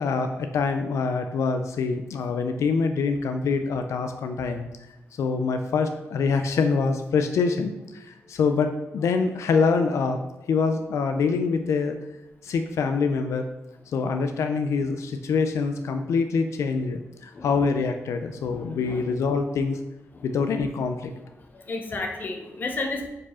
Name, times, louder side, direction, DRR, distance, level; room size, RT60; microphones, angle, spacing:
voice 1, 0.0-4.7 5.2-10.2 10.5-12.0 12.4-13.5 13.9-19.8 20.2-21.1, left 5 dB, 85° left, 7 dB, 0.4 m, -25 dB
voice 2, 18.4-19.1 20.1-20.3 21.5-23.1, left 3 dB, 40° left, 3 dB, 0.8 m, -33 dB
4.8 x 4.6 x 4.2 m, 1.0 s
wide cardioid pair, 160°, 5 cm